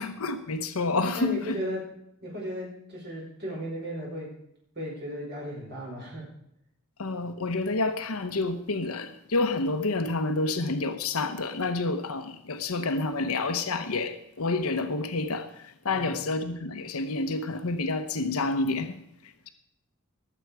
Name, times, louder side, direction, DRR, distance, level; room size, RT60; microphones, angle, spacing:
voice 1, 0.0-1.6 7.0-19.5, left 3 dB, 90° left, 1.0 m, -29 dB
voice 2, 1.2-1.8 2.2-4.3 4.7-6.3 15.9-16.2, equal, 50° right, 4.9 m, -35 dB
19.5 x 8.1 x 4.7 m
head